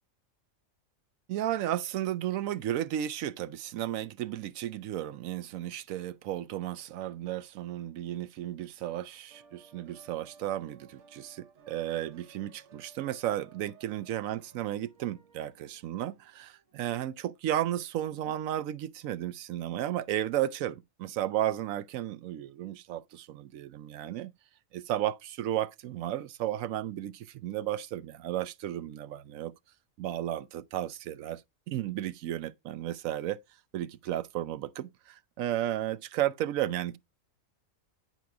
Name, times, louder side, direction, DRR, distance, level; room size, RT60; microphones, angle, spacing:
voice 1, 1.3-24.3 24.7-29.5 30.0-31.4 31.7-33.4 33.7-37.0, right 12 dB, 80° right, 1.0 m, -33 dB
sound 1, 9.3-16.9, right 5 dB, 60° right, 1.2 m, -58 dB
9.2 x 4.6 x 3.5 m
omnidirectional pair, 1.4 m